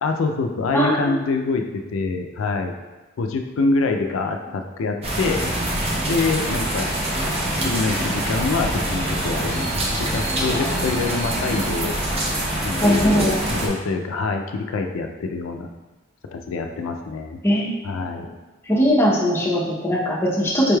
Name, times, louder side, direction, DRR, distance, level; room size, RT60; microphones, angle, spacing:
voice 1, 0.0-2.8 3.2-5.4 6.1-6.9 7.6-12.0 12.6-15.7 16.3-17.4 17.8-18.4, left 3 dB, 85° left, 4 dB, 0.4 m, -25 dB
sound 1, 5.0-13.7, right 1 dB, 30° right, 0.6 m, -25 dB
voice 2, 12.8-13.4 17.4-17.7 18.7-20.8, equal, 10° left, -5 dB, 0.6 m, -20 dB
5.1 x 3.1 x 2.2 m, 1.2 s
head